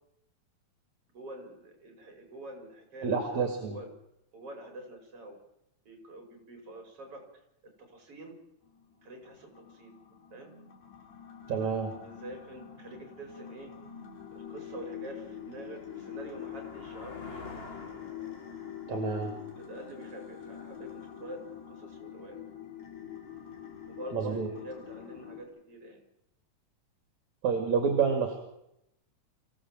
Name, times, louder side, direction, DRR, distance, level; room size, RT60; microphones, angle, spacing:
voice 1, 1.1-3.9 4.3-5.4 5.8-7.2 7.9-8.4 9.0-9.9 10.3-10.5 12.0-13.7 14.3-17.5 19.6-22.4 23.9-26.0, right 1 dB, 45° right, 3 dB, 6.3 m, -46 dB
voice 2, 3.0-3.8 11.5-12.0 18.9-19.4 24.1-24.5 27.4-28.4, right 5 dB, 70° right, 4 dB, 3.7 m, -28 dB
sound 1, 8.7-25.4, left 9 dB, 65° left, 4.4 m, -45 dB
sound 2, 13.6-13.7 14.2-20.8, left 3 dB, 25° left, 1.3 m, -51 dB
25.5 x 16.0 x 7.6 m, 0.82 s
omnidirectional pair, 3.4 m